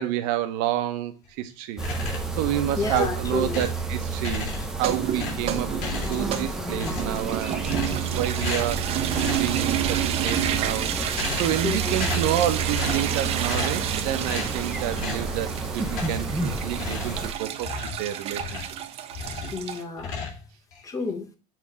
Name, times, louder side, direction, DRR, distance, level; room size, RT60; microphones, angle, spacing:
voice 1, 0.0-1.8 2.4-5.7 6.1-7.7 8.1-10.9 11.4-15.5 15.7-17.7 18.0-18.5, right 12 dB, 70° right, 1.0 m, -29 dB
sound 1, 1.8-2.4 2.8-3.8 4.2-4.8 5.1-6.4 6.7-7.2 7.7-8.1 8.4-8.8 9.1-9.5 10.1-10.7 11.1-11.7 11.9-12.4 12.7-13.1 13.4-13.9 14.3-14.5 15.0-15.3 15.9-16.4 16.7-18.8 19.1-19.6 20.0-20.8, left 4 dB, 65° left, 3.3 m, -34 dB
sound 2, 1.8-17.3, right 4 dB, 5° right, 0.7 m, -30 dB
voice 2, 2.8-3.7 11.6-12.2 19.4-20.2 20.8-21.3, left 4 dB, 20° left, 1.1 m, -30 dB
sound 3, 4.7-19.8, right 11 dB, 40° right, 0.7 m, -30 dB
7.6 x 3.5 x 4.8 m
cardioid pair, 150°, 16 cm